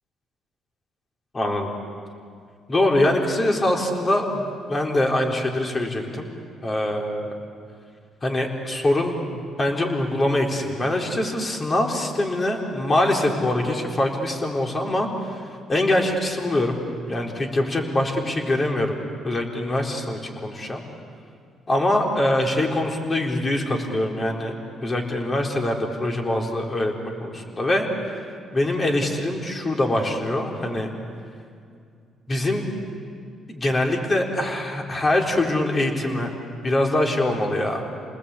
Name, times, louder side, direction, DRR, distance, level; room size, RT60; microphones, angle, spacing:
voice 1, 1.3-1.7 2.7-6.3 6.6-7.3 8.2-15.4 15.7-16.8 17.1-20.8 21.7-24.5 24.8-28.2 28.5-30.9 32.3-32.6 33.5-36.3 36.6-37.8, left 1 dB, 30° left, 1 dB, 4.1 m, -23 dB
30.0 x 20.0 x 8.5 m, 2.3 s
cardioid pair, 90°, 0 cm